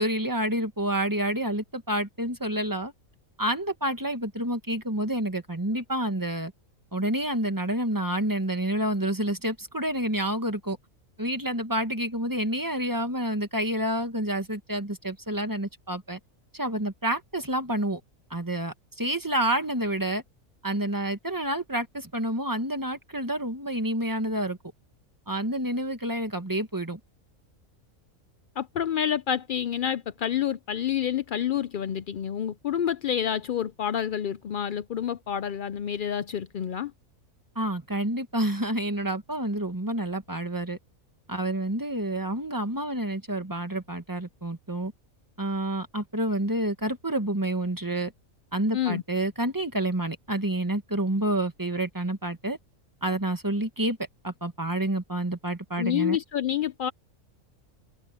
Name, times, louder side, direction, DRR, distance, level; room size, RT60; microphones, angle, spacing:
voice 1, 0.0-2.9 3.4-6.5 6.9-10.8 11.2-16.2 16.5-18.0 18.3-20.2 20.6-24.6 25.3-27.0 37.5-40.8 41.3-44.9 45.4-48.1 48.5-52.6 53.0-54.0 54.2-56.2, right 1 dB, 15° right, 1.5 m, -28 dB
voice 2, 28.6-36.9 48.7-49.0 55.8-56.9, left 9 dB, 90° left, 0.4 m, -28 dB
omnidirectional pair, 1.5 m